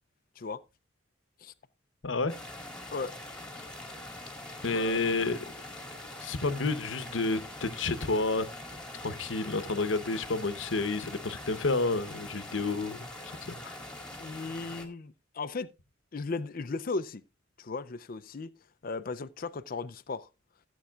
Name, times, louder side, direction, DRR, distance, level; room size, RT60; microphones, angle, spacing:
voice 1, 2.0-2.3 4.6-5.6 6.2-8.5 9.0-13.8, left 3 dB, 80° left, 1.0 m, -30 dB
sound 1, 2.3-14.9, left 1 dB, 5° left, 1.8 m, -43 dB
voice 2, 14.2-15.7 16.1-17.2 17.6-18.5 18.8-20.3, left 3 dB, 45° left, 0.5 m, -36 dB
16.0 x 8.2 x 2.4 m
head